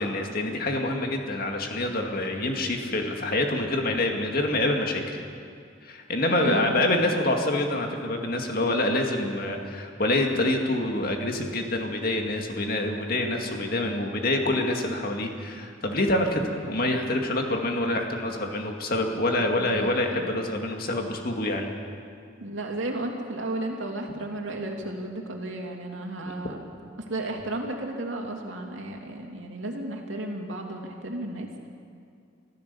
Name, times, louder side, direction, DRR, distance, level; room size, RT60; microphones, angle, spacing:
voice 1, 0.0-5.2 5.8-21.7, left 1 dB, 50° left, 2 dB, 2.2 m, -26 dB
voice 2, 6.3-7.1 19.5-20.4 22.4-26.6 27.0-31.7, right 1 dB, 80° right, 1 dB, 2.7 m, -33 dB
26.0 x 15.0 x 7.0 m, 2.3 s
head